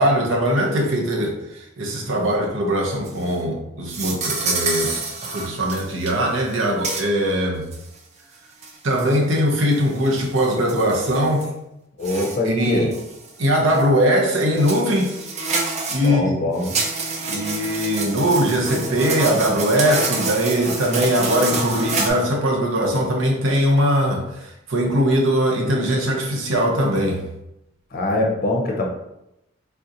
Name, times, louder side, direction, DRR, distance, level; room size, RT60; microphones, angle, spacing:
voice 1, 0.0-5.0 5.3-7.7 8.8-11.5 12.5-12.9 13.4-15.1 15.9-16.4 17.2-27.2, equal, 85° right, 0 dB, 0.7 m, -21 dB
sound 1, 3.1-3.4 3.9-6.1 6.4-6.6 6.8-7.0 7.7-7.8 8.6-9.2 9.7-11.5 12.0-12.4 12.9-13.3 13.7-13.8 14.6-16.1 16.6-22.1, right 3 dB, 35° right, 0.4 m, -27 dB
voice 2, 12.0-12.9 16.0-16.8 27.9-28.9, left 1 dB, 50° left, 0 dB, 0.6 m, -23 dB
3.5 x 2.7 x 2.5 m, 0.86 s
head